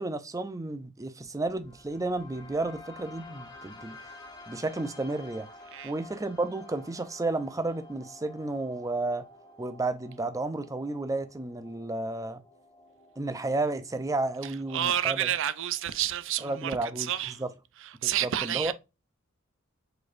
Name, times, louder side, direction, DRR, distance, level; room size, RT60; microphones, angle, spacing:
voice 1, 0.0-4.0 4.5-5.5 5.8-9.3 9.6-12.4 13.2-15.3 16.4-17.1 17.4-17.5 18.0-18.7, right 2 dB, 15° right, 0.5 m, -32 dB
sound 1, 1.2-17.2, left 2 dB, 20° left, 1.1 m, -51 dB
voice 2, 14.4-17.4 17.8-18.7, right 11 dB, 65° right, 0.5 m, -30 dB
4.8 x 4.2 x 2.5 m
head